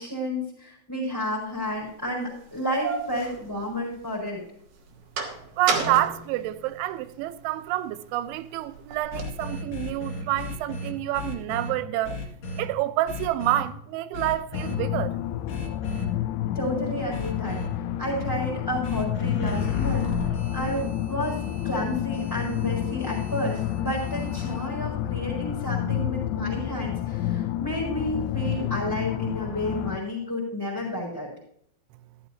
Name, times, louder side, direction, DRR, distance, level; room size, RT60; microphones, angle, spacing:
voice 1, 0.0-4.4 16.5-17.6 18.0-20.1 20.5-31.3, equal, 5° left, 3.8 m, -31 dB
sound 1, 1.6-1.7 2.4-4.2 4.6-7.2 7.7-9.5, right 4 dB, 60° right, 2.5 m, -33 dB
voice 2, 5.6-12.2 12.6-15.1, right 14 dB, 85° right, 3.0 m, -28 dB
sound 2, 9.1-11.7 12.0-12.6 13.1-13.6 14.1-14.8 15.5-16.0 17.1-17.7 18.8-24.7, left 2 dB, 50° left, 2.5 m, -35 dB
sound 3, 14.5-30.0, left 12 dB, 80° left, 2.6 m, -29 dB
14.0 x 12.5 x 2.8 m
omnidirectional pair, 5.4 m